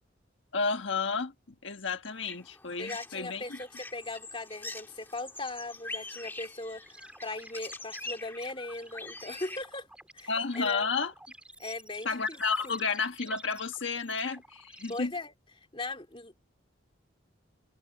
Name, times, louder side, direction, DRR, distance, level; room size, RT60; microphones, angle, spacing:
voice 1, 0.5-1.3 1.6-3.4 10.3-11.1 12.0-15.1, left 4 dB, 75° left, 1.4 m, -31 dB
sound 1, 2.1-9.6, left 2 dB, 10° left, 1.8 m, -44 dB
voice 2, 2.8-9.9 10.1-10.9 11.6-12.4 12.6-12.8 14.9-16.4, left 2 dB, 25° left, 2.8 m, -39 dB
sound 2, 6.8-15.0, right 1 dB, 5° right, 3.6 m, -51 dB
head